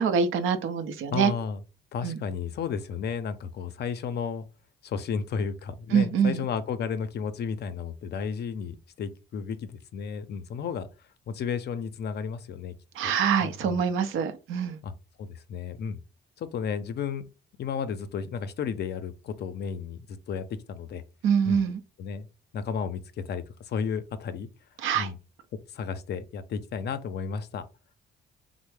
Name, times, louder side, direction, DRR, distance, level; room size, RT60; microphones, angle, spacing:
voice 1, 0.0-1.3 2.0-2.2 5.9-6.4 13.0-14.8 21.2-21.8 24.8-25.1, right 7 dB, 80° right, 0.6 m, -25 dB
voice 2, 1.1-1.6 1.9-4.4 4.8-10.9 11.3-12.7 13.0-13.1 13.4-13.9 14.8-14.9 15.2-16.0 16.4-17.3 17.6-21.0 21.4-21.6 22.0-22.3 22.5-24.5 24.9-25.2 25.7-27.7, left 6 dB, 55° left, 0.5 m, -33 dB
3.3 x 2.0 x 3.2 m
cardioid pair, 90°, 20 cm